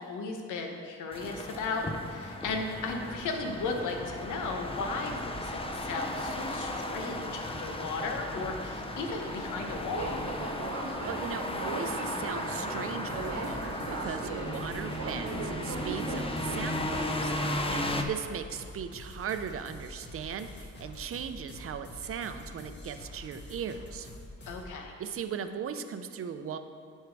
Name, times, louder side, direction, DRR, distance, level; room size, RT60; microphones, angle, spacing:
voice 1, 0.0-10.2 17.7-18.0 24.5-24.9, left 3 dB, 80° left, 3 dB, 1.0 m, -36 dB
sound 1, 1.1-18.0, left 1 dB, 20° left, 0.7 m, -35 dB
Subway metro underground, 8.0-17.6, right 3 dB, 80° right, 1.2 m, -40 dB
voice 2, 11.0-24.1 25.0-26.6, right 7 dB, 45° right, 9 dB, 0.6 m, -38 dB
sound 2, 13.1-24.8, left 1 dB, 35° left, 1.5 m, -46 dB
9.9 x 4.7 x 4.7 m, 2.2 s
cardioid pair, 90°, 30 cm